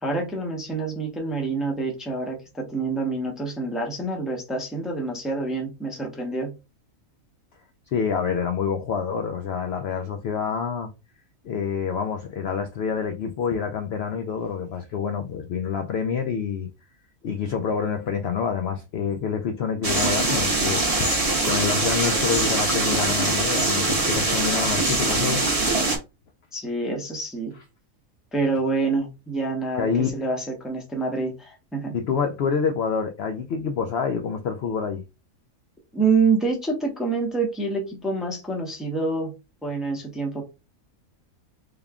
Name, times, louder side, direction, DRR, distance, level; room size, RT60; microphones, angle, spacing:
voice 1, 0.0-6.5 26.5-27.5 28.3-32.0 35.9-39.3 39.6-40.4, right 3 dB, ahead, 0.6 m, -27 dB
voice 2, 7.9-10.9 11.4-16.7 17.2-21.1 21.4-25.4 29.8-30.1 31.9-35.0, left 6 dB, 65° left, 0.6 m, -27 dB
sound 1, 19.8-26.0, right 2 dB, 30° right, 0.8 m, -23 dB
3.6 x 2.2 x 3.5 m
omnidirectional pair, 1.5 m